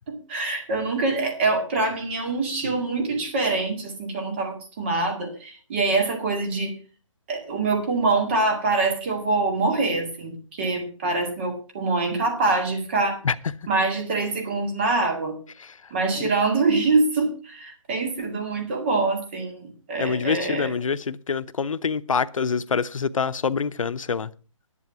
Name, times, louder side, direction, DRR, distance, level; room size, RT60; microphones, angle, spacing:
voice 1, 0.1-6.7 7.3-13.2 13.7-15.3 15.9-19.6 19.9-20.7, right 3 dB, 20° right, 2.0 m, -24 dB
voice 2, 20.0-24.3, left 5 dB, 85° left, 0.7 m, -26 dB
11.0 x 7.7 x 6.0 m
hypercardioid pair, 175°, 17 cm